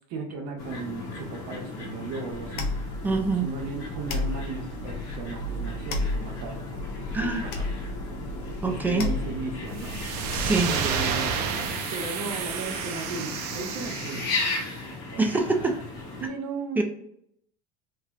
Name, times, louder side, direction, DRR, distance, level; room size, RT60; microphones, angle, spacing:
voice 1, 0.1-2.7 3.4-6.7 7.2-7.6 8.6-10.0 10.6-11.3 11.9-14.6 15.1-15.6 16.2-16.8, right 3 dB, 55° right, 2 dB, 0.9 m, -36 dB
sound 1, 0.6-16.3, left 3 dB, 75° left, 1.0 m, -36 dB
sound 2, 2.3-10.9, left 2 dB, 90° left, 0.6 m, -33 dB
voice 2, 3.0-3.5 7.1-7.4 8.6-9.1 10.3-10.7 15.2-15.7 16.8-16.9, right 3 dB, 10° right, 4 dB, 0.3 m, -24 dB
sound 3, 9.7-14.7, right 7 dB, 85° right, 0.5 m, -31 dB
3.0 x 2.7 x 2.4 m, 0.72 s
cardioid pair, 150°, 20 cm